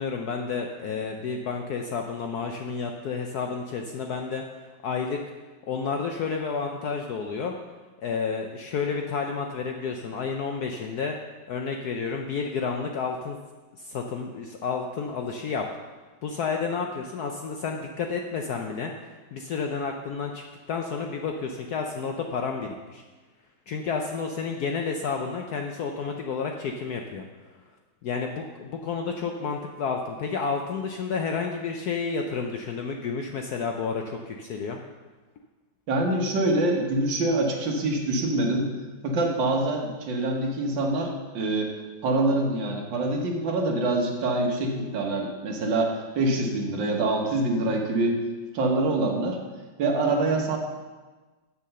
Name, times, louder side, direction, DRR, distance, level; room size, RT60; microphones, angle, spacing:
voice 1, 0.0-4.4 4.8-5.2 5.7-7.5 8.0-11.2 11.5-13.4 13.7-15.6 16.2-18.9 19.3-23.0 23.7-27.2 28.0-34.8, left 5 dB, 70° left, 3 dB, 0.9 m, -30 dB
voice 2, 35.9-38.7 39.0-41.7 42.0-48.2 48.5-49.4 49.8-50.6, right 2 dB, 65° right, 1 dB, 1.9 m, -25 dB
7.6 x 6.8 x 6.6 m, 1.3 s
omnidirectional pair, 2.2 m